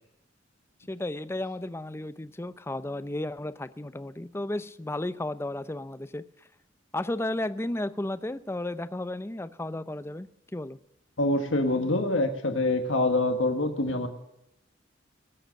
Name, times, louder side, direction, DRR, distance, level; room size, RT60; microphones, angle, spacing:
voice 1, 0.9-6.2 6.9-10.3 10.5-10.8, left 1 dB, 15° left, 14 dB, 0.5 m, -33 dB
voice 2, 11.2-14.1, left 2 dB, 85° left, 6 dB, 1.6 m, -25 dB
20.0 x 7.9 x 6.5 m, 0.85 s
head